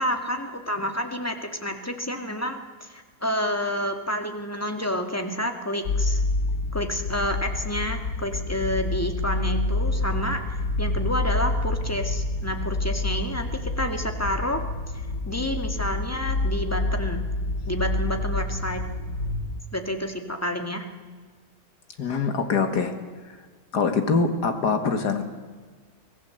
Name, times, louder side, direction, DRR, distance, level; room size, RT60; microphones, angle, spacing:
voice 1, 0.0-6.2 6.7-14.6 15.3-17.2 17.6-18.8 19.7-20.9, equal, 10° left, 5 dB, 2.1 m, -29 dB
sound 1, 5.8-19.6, left 2 dB, 65° left, 1.9 m, -28 dB
voice 2, 22.0-22.9 23.7-25.2, left 5 dB, 80° left, 7 dB, 2.5 m, -23 dB
24.5 x 17.5 x 8.0 m, 1.5 s
omnidirectional pair, 1.7 m